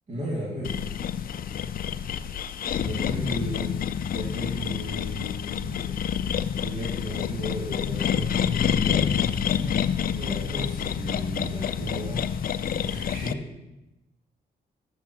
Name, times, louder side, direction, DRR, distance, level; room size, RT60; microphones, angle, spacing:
voice 1, 0.1-0.8 2.8-6.3 6.6-12.3 12.7-13.5, equal, 40° right, -5 dB, 2.3 m, -35 dB
sound 1, 0.6-13.3, left 8 dB, 55° left, 0.4 m, -28 dB
12.0 x 8.1 x 2.9 m, 0.99 s
cardioid pair, 65°, 18 cm